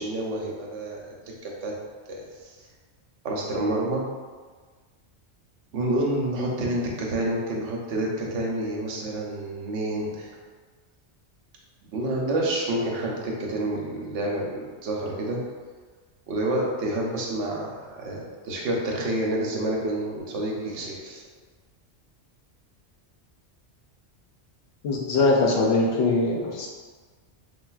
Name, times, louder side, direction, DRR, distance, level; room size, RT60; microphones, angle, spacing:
voice 1, 0.0-1.7 2.1-2.5 3.2-4.0 5.7-10.3 11.9-15.4 16.3-21.2, right 1 dB, 90° right, -2 dB, 0.9 m, -28 dB
voice 2, 24.8-26.7, left 3 dB, 75° left, -1 dB, 0.8 m, -22 dB
3.9 x 2.1 x 2.3 m, 1.5 s
omnidirectional pair, 1.2 m